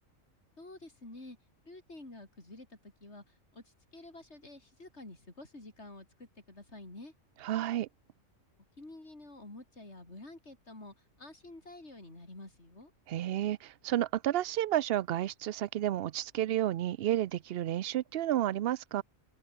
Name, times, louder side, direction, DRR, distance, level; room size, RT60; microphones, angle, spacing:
voice 1, 0.6-1.4 1.6-7.1 8.8-12.9, left 2 dB, 55° left, 5.7 m, -50 dB
voice 2, 7.4-7.9 13.1-19.0, right 12 dB, 60° right, 0.6 m, -31 dB
open air
omnidirectional pair, 1.4 m